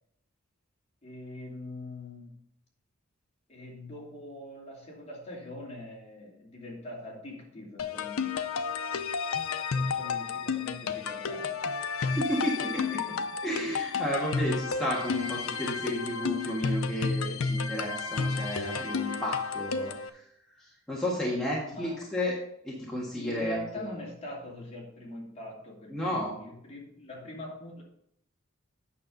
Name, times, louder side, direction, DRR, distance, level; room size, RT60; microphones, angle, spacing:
voice 1, 1.0-2.4 3.5-8.3 8.6-9.0 9.7-11.7 21.7-22.0 23.2-27.8, left 1 dB, 30° left, -4 dB, 2.8 m, -43 dB
sound 1, 7.8-20.1, left 5 dB, 80° left, 0.6 m, -31 dB
voice 2, 12.0-13.2 13.4-20.2 20.5-22.4 22.6-23.8 25.9-26.3, equal, 5° left, -6 dB, 1.6 m, -32 dB
8.7 x 6.5 x 3.9 m, 0.74 s
head